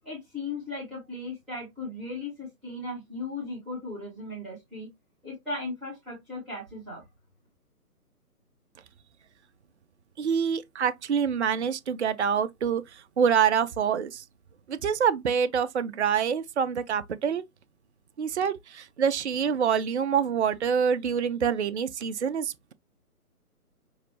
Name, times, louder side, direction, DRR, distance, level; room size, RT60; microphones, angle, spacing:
voice 1, 0.0-4.9 5.2-7.0, left 2 dB, ahead, 0.6 m, -37 dB
voice 2, 10.2-12.8 13.2-14.2 14.7-17.4 18.2-22.7, right 7 dB, 50° right, 0.4 m, -26 dB
5.7 x 2.6 x 2.9 m
figure-of-eight pair, 140°, 45 cm